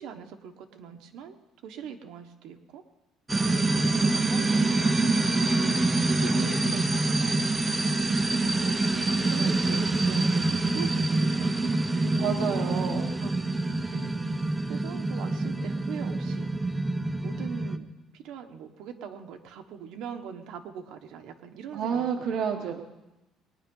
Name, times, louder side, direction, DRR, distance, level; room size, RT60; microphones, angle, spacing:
voice 1, 0.0-1.4 1.6-2.8 3.4-5.3 6.1-6.8 7.2-7.5 8.5-8.8 9.2-12.6 13.2-13.3 13.9-14.1 14.7-16.5 17.2-17.9 18.1-22.1 22.6-22.8, right 8 dB, 70° right, 5 dB, 1.2 m, -42 dB
sound 1, 3.3-17.8, right 2 dB, 10° right, 0.6 m, -26 dB
voice 2, 6.3-7.0 10.0-10.3 12.2-13.2 21.7-22.8, right 7 dB, 50° right, 3 dB, 0.9 m, -30 dB
20.5 x 10.0 x 5.4 m, 1.0 s
cardioid pair, 175°, 0 cm